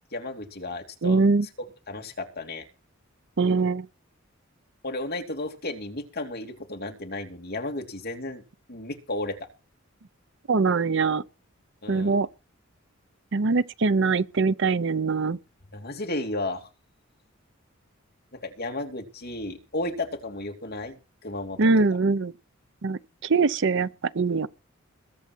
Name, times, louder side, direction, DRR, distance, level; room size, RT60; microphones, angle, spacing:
voice 1, 0.1-1.2 1.9-2.6 4.8-8.4 8.7-9.4 11.8-12.1 15.7-16.7 18.4-21.6, left 2 dB, 50° left, 3.0 m, -33 dB
voice 2, 1.0-1.5 3.4-3.9 10.5-11.2 11.9-12.3 13.3-15.4 21.6-22.3 22.8-23.9 24.1-24.5, right 4 dB, 65° right, 0.7 m, -22 dB
21.5 x 7.9 x 4.6 m
head